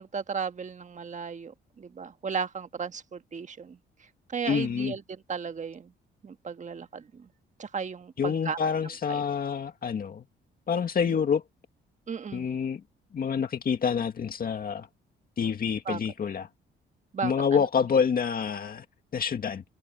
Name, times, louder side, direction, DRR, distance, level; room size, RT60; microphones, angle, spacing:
voice 1, 0.0-3.8 4.3-5.9 6.2-7.3 7.6-8.6 9.1-9.2 11.1-11.2 12.1-12.5 15.8-16.0 17.1-17.6, right 6 dB, 40° right, 1.5 m, -35 dB
voice 2, 4.4-4.9 8.2-10.2 10.7-11.4 12.3-12.8 13.1-14.9 15.4-16.5 17.2-18.8 19.1-19.6, left 6 dB, 45° left, 2.0 m, -27 dB
cardioid pair, 90°, 20 cm